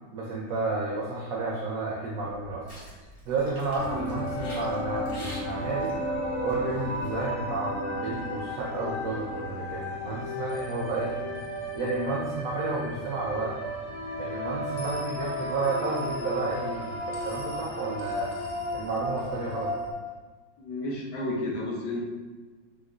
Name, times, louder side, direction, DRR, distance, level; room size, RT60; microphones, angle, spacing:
voice 1, 0.1-2.6 3.3-6.0 6.4-11.2 11.7-13.6 14.2-18.4 18.7-19.8, right 3 dB, 80° right, -4 dB, 0.7 m, -31 dB
sound 1, 2.2-7.2, equal, 50° left, 0.3 m, -47 dB
sound 2, 3.8-19.9, equal, 90° left, 0.7 m, -34 dB
voice 2, 20.6-22.0, left 2 dB, 70° left, -2 dB, 1.2 m, -31 dB
4.8 x 2.1 x 2.4 m, 1.3 s
omnidirectional pair, 2.0 m